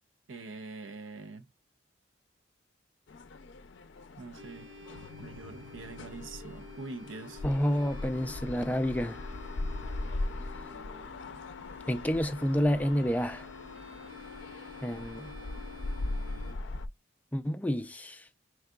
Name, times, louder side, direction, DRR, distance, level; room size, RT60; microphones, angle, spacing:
voice 1, 0.3-1.5 4.2-4.7 5.2-7.4, right 3 dB, 85° right, 0.6 m, -44 dB
sound 1, 3.1-16.9, left 2 dB, 70° left, 0.5 m, -40 dB
sound 2, 4.4-16.5, left 3 dB, 70° right, 1.3 m, -50 dB
voice 2, 7.4-9.2 11.9-13.5 14.8-15.3 17.3-18.2, equal, 10° left, 0.3 m, -29 dB
4.6 x 3.7 x 2.2 m
head